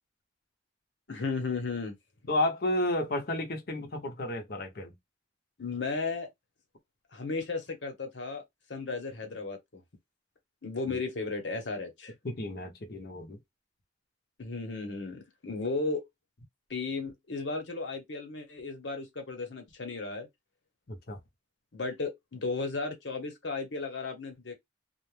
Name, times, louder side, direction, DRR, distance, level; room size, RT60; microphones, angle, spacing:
voice 1, 1.1-2.0 5.6-6.3 7.1-8.4 8.7-9.8 10.6-12.1 14.4-16.0 16.7-20.3 21.7-24.5, left 3 dB, 90° left, 1.0 m, -35 dB
voice 2, 2.3-4.9 10.9-11.0 12.2-13.4 20.9-21.2, left 1 dB, 55° left, 0.8 m, -32 dB
2.4 x 2.2 x 3.2 m
head